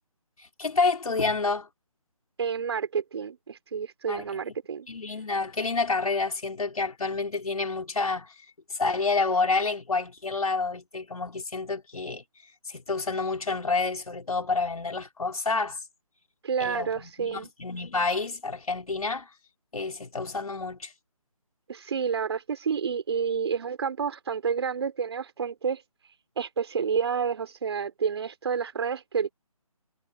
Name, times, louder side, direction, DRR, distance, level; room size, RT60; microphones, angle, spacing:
voice 1, 0.4-1.7 4.1-4.2 4.9-8.3 8.7-12.2 12.7-15.8 16.6-19.3 19.7-20.9, left 4 dB, 70° left, 4.7 m, -29 dB
voice 2, 2.4-4.9 16.4-17.5 21.7-25.8 26.4-29.3, right 6 dB, 45° right, 4.8 m, -29 dB
figure-of-eight pair, 160°, 19 cm